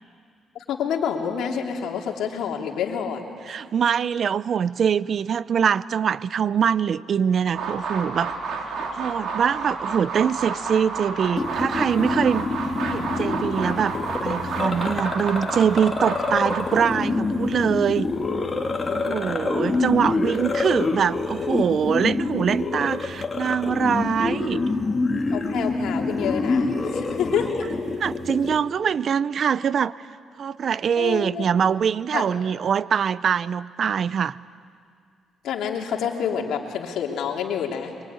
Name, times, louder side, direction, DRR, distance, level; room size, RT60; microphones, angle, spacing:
voice 1, 0.5-3.2 18.9-19.2 20.1-20.6 25.3-27.7 31.0-31.4 32.1-32.3 35.4-37.9, left 7 dB, 80° left, 2 dB, 3.0 m, -28 dB
voice 2, 3.5-8.3 8.9-12.4 12.9-14.0 14.2-18.1 18.9-24.6 28.0-29.9 30.4-34.4, right 7 dB, 55° right, 18 dB, 0.6 m, -23 dB
sound 1, 7.5-16.8, right 4 dB, 70° right, 3.8 m, -30 dB
sound 2, 11.4-28.6, left 3 dB, 30° left, 3.0 m, -26 dB
24.5 x 23.5 x 9.6 m, 2.3 s
cardioid pair, 90°, 0 cm